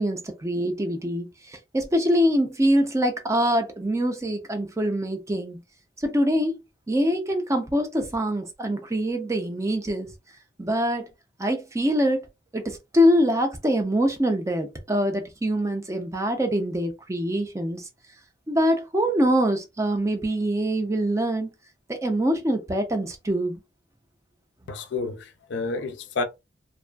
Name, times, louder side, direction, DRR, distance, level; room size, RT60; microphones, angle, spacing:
voice 1, 0.0-5.6 6.0-6.5 6.9-10.1 10.6-11.1 11.4-12.2 12.5-17.9 18.5-21.5 21.9-23.6, equal, 15° right, 0.4 m, -24 dB
voice 2, 24.7-26.2, left 3 dB, 60° left, 0.4 m, -30 dB
2.5 x 2.3 x 2.2 m
head